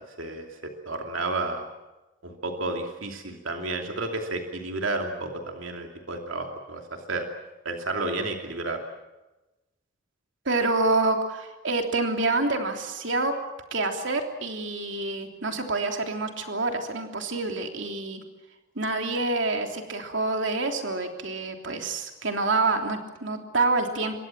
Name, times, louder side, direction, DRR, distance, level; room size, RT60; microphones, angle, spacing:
voice 1, 0.9-1.7 2.2-7.3 7.6-8.8, right 2 dB, 90° right, 3 dB, 2.8 m, -31 dB
voice 2, 10.5-13.3 13.7-18.2 18.8-24.2, right 3 dB, 65° right, 4 dB, 3.3 m, -27 dB
27.0 x 23.0 x 7.6 m, 1.1 s
head